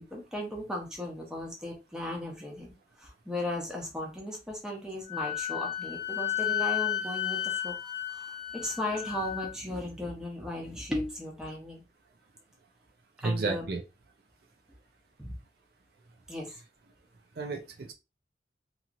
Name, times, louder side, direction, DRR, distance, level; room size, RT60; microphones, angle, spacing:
voice 1, 0.1-7.8 8.0-11.8 13.2-13.6 15.2-15.3 16.3-16.5, left 1 dB, 5° right, -1 dB, 0.8 m, -36 dB
Wind instrument woodwind instrument, 5.1-9.5, left 11 dB, 25° left, 1.0 m, -33 dB
voice 2, 13.2-13.8 17.4-17.9, right 3 dB, 55° right, 3 dB, 0.5 m, -32 dB
2.9 x 2.8 x 2.5 m, 0.28 s
head